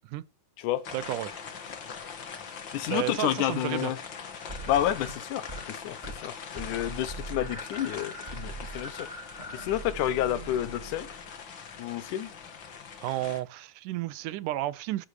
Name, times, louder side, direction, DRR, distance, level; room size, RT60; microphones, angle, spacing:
sound 1, 0.8-13.4, left 6 dB, 45° left, 1.9 m, -42 dB
voice 1, 0.9-1.3 2.9-3.9 13.0-15.1, right 15 dB, 85° right, 2.2 m, -32 dB
voice 2, 2.7-4.0 4.7-6.0 6.2-9.1 9.5-11.1 11.8-12.3, left 12 dB, 80° left, 2.5 m, -30 dB
sound 2, 4.5-5.7 6.0-6.3 6.6-11.3, right 2 dB, 10° right, 2.4 m, -41 dB
11.0 x 10.5 x 4.9 m
omnidirectional pair, 3.6 m